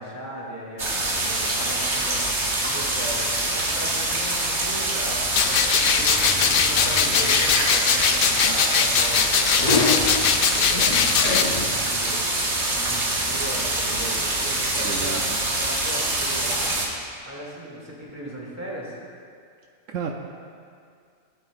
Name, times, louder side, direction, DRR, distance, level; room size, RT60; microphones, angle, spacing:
voice 1, 0.0-12.2 12.7-15.3 15.6-16.8 17.2-19.0, equal, 10° right, -5 dB, 2.4 m, -37 dB
sound 1, 0.8-16.9, right 2 dB, 55° right, 1.8 m, -25 dB
sound 2, 5.3-11.4, left 7 dB, 65° left, 0.5 m, -21 dB
sound 3, 5.9-11.7, left 3 dB, 35° left, 0.9 m, -29 dB
voice 2, 14.8-15.4 19.9-20.1, right 7 dB, 75° right, 1 dB, 1.0 m, -31 dB
17.5 x 9.1 x 2.5 m, 2.3 s
omnidirectional pair, 1.4 m